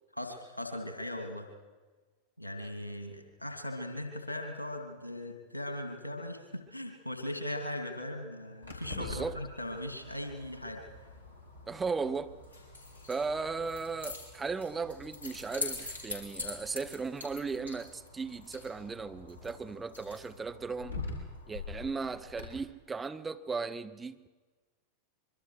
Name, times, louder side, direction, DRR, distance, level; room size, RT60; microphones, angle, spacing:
voice 1, 0.1-1.5 2.4-10.8, left 1 dB, 85° left, 2.9 m, -39 dB
Keys jangling, 8.6-22.4, left 3 dB, 90° right, 4.9 m, -44 dB
voice 2, 8.9-9.4 11.7-12.3 13.1-21.0 21.5-24.3, right 4 dB, 15° right, 1.0 m, -36 dB
25.0 x 23.5 x 4.9 m
figure-of-eight pair, 90°, 0 cm